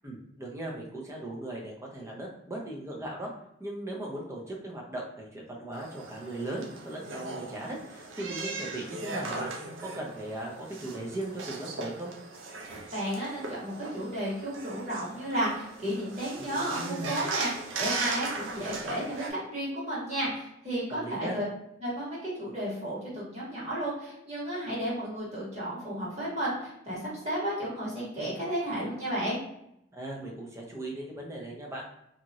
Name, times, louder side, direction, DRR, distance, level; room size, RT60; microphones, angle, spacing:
voice 1, 0.0-3.3 3.6-9.5 9.8-12.1 20.9-21.4 29.9-31.8, right 1 dB, 15° right, -2 dB, 0.6 m, -38 dB
sound 1, 5.7-19.3, right 3 dB, 80° right, 0.5 m, -38 dB
voice 2, 12.9-21.4 21.8-29.4, right 1 dB, 35° right, -8 dB, 1.5 m, -33 dB
2.7 x 2.4 x 3.0 m, 0.78 s
head